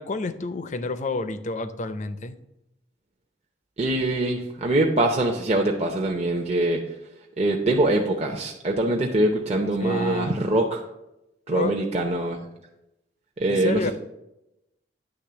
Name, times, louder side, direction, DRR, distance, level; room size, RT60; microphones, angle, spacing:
voice 1, 0.0-2.4 9.8-10.3 11.5-11.8 13.5-13.9, left 3 dB, 40° left, 12 dB, 0.5 m, -29 dB
voice 2, 3.8-6.8 7.4-10.8 11.5-12.4 13.4-13.9, right 1 dB, 35° right, 0 dB, 0.7 m, -23 dB
9.9 x 3.4 x 6.8 m, 0.90 s
head